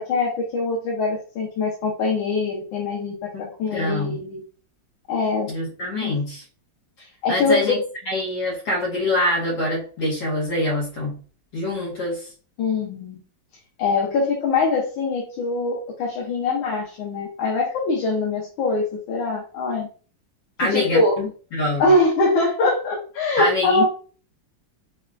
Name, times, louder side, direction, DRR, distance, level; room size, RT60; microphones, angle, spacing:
voice 1, 0.0-3.1 3.6-4.4 5.1-5.5 6.0-6.2 7.2-7.8 12.6-13.2 13.8-19.9 20.6-21.2 21.8-23.8, left 3 dB, 90° left, -2 dB, 1.6 m, -23 dB
voice 2, 3.3-4.2 5.5-6.4 7.3-7.8 8.0-11.1 11.5-12.3 20.6-21.8 23.4-23.8, left 1 dB, 70° left, -5 dB, 1.8 m, -25 dB
5.4 x 2.2 x 2.4 m, 0.40 s
omnidirectional pair, 2.1 m